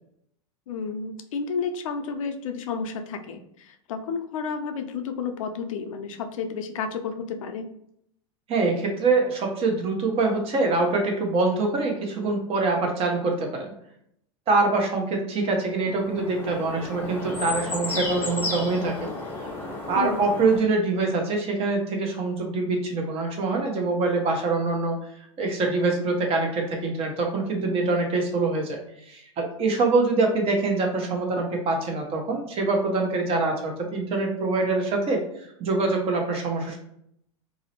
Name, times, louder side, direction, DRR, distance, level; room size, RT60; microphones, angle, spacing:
voice 1, 0.7-7.6 19.9-20.3, left 5 dB, 85° left, 7 dB, 0.4 m, -31 dB
voice 2, 8.5-13.7 14.5-19.1 19.9-25.0 25.4-28.8 29.1-36.8, right 3 dB, 35° right, 2 dB, 0.7 m, -24 dB
sound 1, 15.8-20.6, left 3 dB, 10° left, 0.6 m, -33 dB
2.5 x 2.0 x 2.8 m, 0.72 s
supercardioid pair, 120°, 17 cm